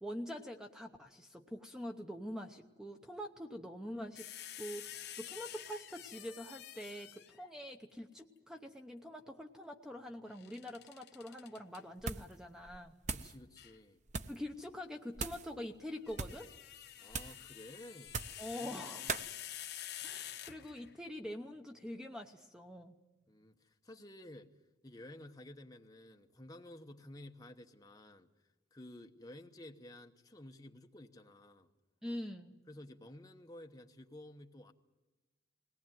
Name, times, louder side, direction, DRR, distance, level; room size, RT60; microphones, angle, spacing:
voice 1, 0.0-4.3 4.6-13.0 14.3-16.5 18.4-19.1 20.0-23.0 32.0-32.6, equal, 5° right, 4 dB, 0.8 m, -45 dB
sound 1, 4.2-7.5 10.3-11.8 13.6-13.8 15.9-21.0, left 11 dB, 55° left, 0.8 m, -48 dB
sound 2, 12.0-12.4 12.7-13.4 14.1-14.4 15.1-15.5 16.1-16.5 17.1-17.4 18.1-18.5 19.1-19.3, right 4 dB, 40° right, 0.7 m, -40 dB
voice 2, 13.1-14.0 17.0-18.2 18.5-19.3 23.3-24.5 24.8-28.3 28.7-31.7 32.7-34.7, left 1 dB, 20° left, 4 dB, 1.0 m, -53 dB
21.0 x 18.5 x 9.1 m, 1.1 s
head